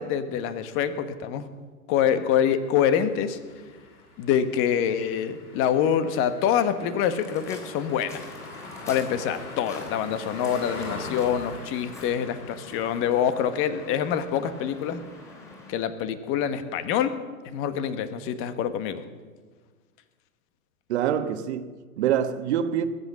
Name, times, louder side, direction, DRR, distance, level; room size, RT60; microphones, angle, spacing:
voice 1, 0.0-1.5 1.9-3.4 4.2-8.3 8.9-15.0 15.7-17.2 17.5-19.0, left 8 dB, 30° left, 1.3 m, -25 dB
sound 1, 2.8-15.8, left 2 dB, 90° left, 2.9 m, -44 dB
Waves surf, 7.0-15.7, left 2 dB, 5° left, 3.5 m, -45 dB
voice 2, 20.9-22.9, right 9 dB, 50° right, 1.3 m, -26 dB
20.0 x 8.2 x 7.2 m
hypercardioid pair, 115°, 43 cm